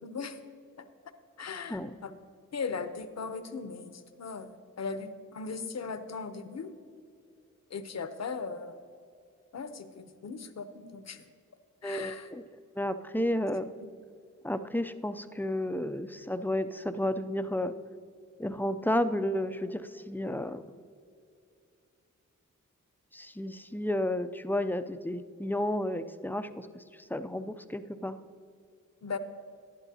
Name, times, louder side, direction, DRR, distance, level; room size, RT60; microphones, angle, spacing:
voice 1, 0.0-0.4 0.8-0.9 1.4-2.1 2.5-6.7 7.7-8.8 9.5-11.2 11.8-12.3 13.8-13.9 29.0-29.2, left 5 dB, 55° left, 10 dB, 0.7 m, -38 dB
voice 2, 11.8-12.4 12.8-13.7 14.4-17.7 18.4-20.6 23.1-28.2, left 1 dB, 5° left, 10 dB, 0.4 m, -32 dB
11.5 x 11.0 x 2.8 m, 2.4 s
cardioid pair, 50°, 32 cm